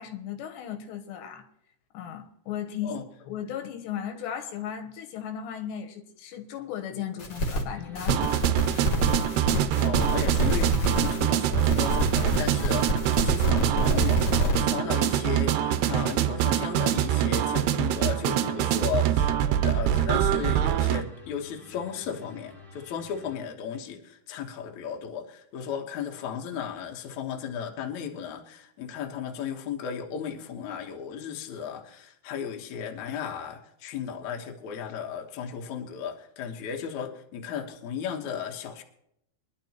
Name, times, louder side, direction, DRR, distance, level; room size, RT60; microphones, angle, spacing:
voice 1, 0.0-1.5 1.9-3.0 3.2-8.2 8.6-8.8, left 9 dB, 90° left, 3.3 m, -36 dB
sound 1, 7.2-7.6 7.9-11.2 11.5-14.5, equal, 45° left, 2.4 m, -27 dB
sound 2, 7.7-23.4, left 3 dB, ahead, 0.5 m, -50 dB
sound 3, 8.1-21.0, right 11 dB, 80° right, 2.6 m, -25 dB
voice 2, 9.8-38.8, left 7 dB, 60° left, 2.2 m, -35 dB
23.0 x 11.5 x 3.0 m
omnidirectional pair, 4.8 m